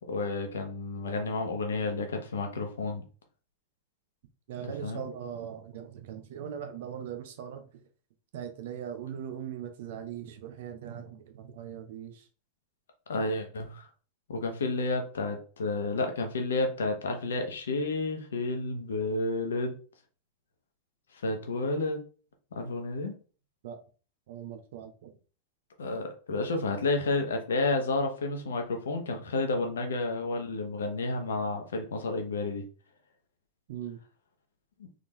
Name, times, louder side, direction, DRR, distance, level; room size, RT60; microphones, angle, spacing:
voice 1, 0.1-3.0 4.8-5.0 13.1-13.9 14.3-19.7 21.2-22.0 22.5-23.1 25.8-32.6 34.8-34.9, left 3 dB, 65° left, 1.0 m, -31 dB
voice 2, 4.5-7.6 8.3-12.3 23.6-23.8 24.3-25.1 33.7-34.0, right 9 dB, 55° right, 0.9 m, -40 dB
3.9 x 3.8 x 3.2 m
figure-of-eight pair, 90°, 0 cm